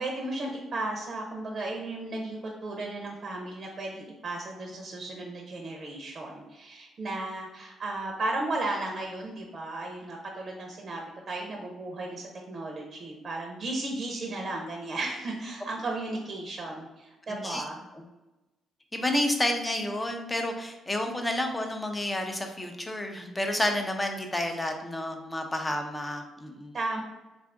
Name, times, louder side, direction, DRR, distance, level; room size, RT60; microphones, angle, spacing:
voice 1, 0.0-17.9 26.7-27.0, right 2 dB, 45° right, 0 dB, 0.7 m, -35 dB
voice 2, 17.3-17.6 18.9-26.7, left 1 dB, 15° left, 4 dB, 0.6 m, -30 dB
3.6 x 2.5 x 3.5 m, 1.1 s
cardioid pair, 90°, 0 cm